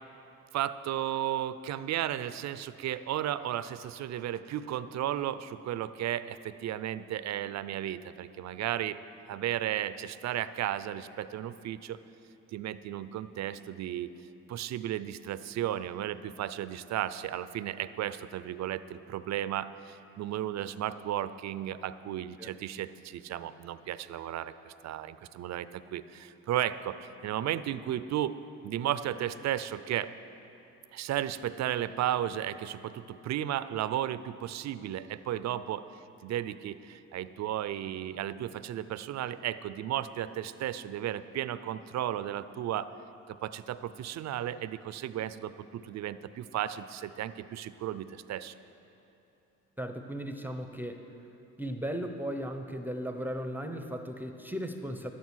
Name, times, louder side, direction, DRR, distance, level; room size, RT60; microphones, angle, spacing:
voice 1, 0.5-9.0 9.3-12.0 12.5-14.1 14.5-28.3 28.6-30.1 30.9-35.8 36.2-42.9 43.3-48.5, right 11 dB, 65° right, 14 dB, 0.5 m, -34 dB
voice 2, 49.8-51.1 51.6-55.1, equal, 5° right, 6 dB, 0.7 m, -36 dB
11.5 x 9.4 x 6.3 m, 2.9 s
cardioid pair, 90°, 30 cm